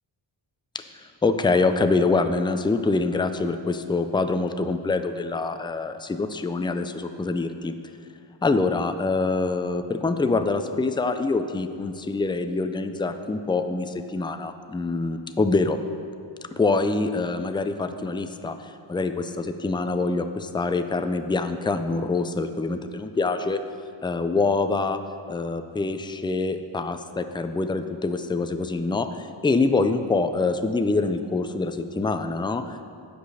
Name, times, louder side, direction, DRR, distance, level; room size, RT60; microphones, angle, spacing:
voice 1, 1.2-7.7 8.4-15.8 16.5-23.6 24.0-25.0 25.3-32.9, left 3 dB, 10° left, 8 dB, 0.3 m, -25 dB
8.0 x 5.1 x 6.3 m, 2.3 s
wide cardioid pair, 65°, 49 cm